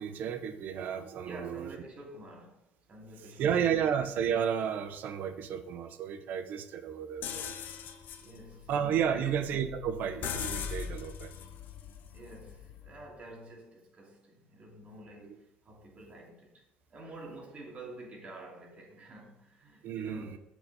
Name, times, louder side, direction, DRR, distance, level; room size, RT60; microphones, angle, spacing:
voice 1, 0.0-1.7 3.4-7.5 8.7-11.3 19.8-20.4, right 8 dB, 65° right, 0.9 m, -32 dB
voice 2, 1.2-2.6 2.9-3.5 8.2-8.7 9.0-9.3 12.1-20.4, right 2 dB, 45° right, 2.8 m, -48 dB
sound 1, 7.2-13.0, left 8 dB, 65° left, 0.8 m, -41 dB
7.1 x 6.4 x 4.2 m
supercardioid pair, 80°, 3 cm